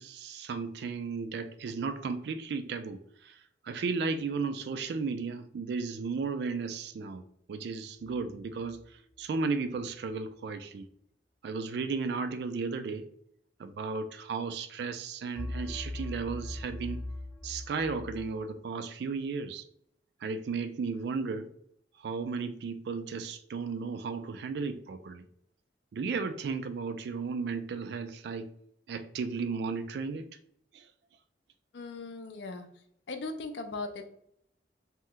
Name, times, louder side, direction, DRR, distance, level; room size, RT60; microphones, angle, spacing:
voice 1, 0.0-10.9 11.4-13.1 13.6-17.0 17.4-19.6 20.2-21.5 22.0-25.2 25.9-28.5 28.9-30.3 30.7-30.9, right 4 dB, 65° right, 0.3 m, -34 dB
sound 1, 8.0-8.9 15.4-18.4, left 1 dB, 45° left, 0.8 m, -40 dB
voice 2, 31.7-34.1, left 3 dB, 75° left, 0.4 m, -39 dB
2.8 x 2.1 x 3.5 m
head